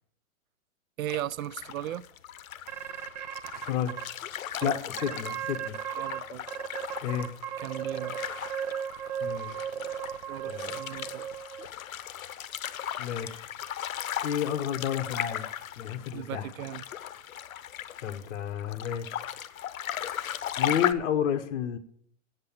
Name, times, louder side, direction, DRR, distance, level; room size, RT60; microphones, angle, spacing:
voice 1, 1.0-2.0 4.6-4.8 6.0-6.4 7.6-8.2 8.6-8.8 10.3-11.3 16.1-16.8, right 13 dB, 80° right, 0.6 m, -37 dB
sound 1, 1.1-20.9, left 10 dB, 90° left, 0.8 m, -37 dB
sound 2, 2.7-4.0 4.5-4.6 5.0-6.2 6.5-11.7, right 9 dB, 30° right, 0.6 m, -35 dB
voice 2, 3.5-4.0 4.6-5.8 7.0-7.3 9.2-9.6 10.4-10.7 13.0-13.5 14.2-15.5 15.8-16.5 18.0-19.2 20.6-21.8, left 9 dB, 60° left, 1.1 m, -31 dB
8.1 x 7.9 x 7.2 m
hypercardioid pair, 175°, 40 cm